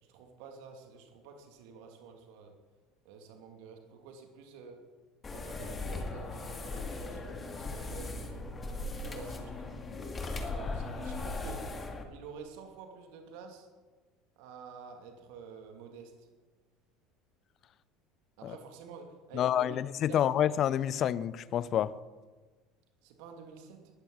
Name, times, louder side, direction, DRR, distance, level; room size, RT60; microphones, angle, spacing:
voice 1, 0.0-2.5 3.0-4.8 5.3-8.5 9.0-9.6 10.5-11.7 12.1-13.7 14.4-16.3 18.4-20.4 23.0-23.9, right 5 dB, 60° right, 2.4 m, -49 dB
sound 1, 5.2-12.0, left 3 dB, 25° left, 2.2 m, -38 dB
voice 2, 19.3-21.9, left 10 dB, 45° left, 0.6 m, -28 dB
19.5 x 13.5 x 4.0 m
figure-of-eight pair, 65°, 0 cm